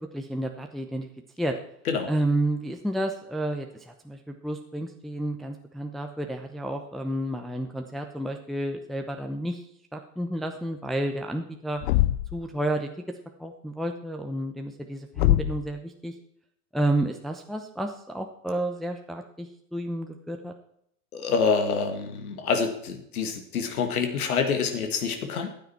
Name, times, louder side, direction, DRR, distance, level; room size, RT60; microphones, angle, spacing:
voice 1, 0.1-1.1 1.4-1.6 2.1-9.6 9.9-11.8 12.3-12.9 13.4-16.1 16.7-20.5, right 1 dB, ahead, 3 dB, 0.8 m, -31 dB
Thump thud, 11.8-12.5 15.2-15.7, left 16 dB, 45° left, 0.6 m, -23 dB
voice 2, 21.1-25.5, left 5 dB, 70° left, 6 dB, 2.2 m, -26 dB
15.0 x 9.3 x 4.5 m, 0.72 s
hypercardioid pair, 100°, 45 cm